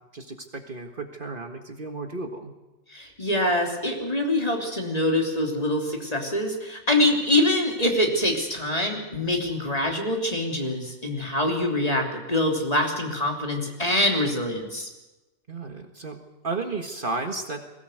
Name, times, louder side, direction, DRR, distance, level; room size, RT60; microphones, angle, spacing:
voice 1, 0.1-2.6 15.5-16.2 16.4-17.6, right 3 dB, 45° right, 5 dB, 1.8 m, -33 dB
voice 2, 2.9-14.9, left 1 dB, 30° left, 1 dB, 3.2 m, -25 dB
21.5 x 17.5 x 7.9 m, 1.1 s
omnidirectional pair, 1.3 m